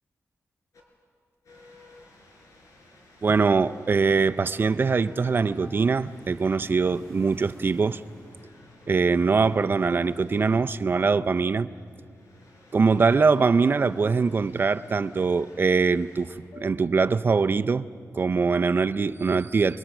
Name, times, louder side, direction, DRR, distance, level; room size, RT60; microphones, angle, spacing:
sound 1, 0.7-0.8 1.4-16.4, left 2 dB, 75° left, 4.4 m, -55 dB
sound 2, 2.0-8.4, right 1 dB, 20° left, 7.2 m, -57 dB
voice 1, 3.2-8.0 8.9-11.7 12.7-17.8 18.1-19.8, right 4 dB, 40° right, 13 dB, 0.5 m, -23 dB
sound 3, 4.6-7.2 8.9-11.5 11.8-12.2 12.7-15.5 16.5-18.0, left 1 dB, 45° left, 1.2 m, -52 dB
29.5 x 22.0 x 6.1 m, 2.1 s
wide cardioid pair, 140°, 6 cm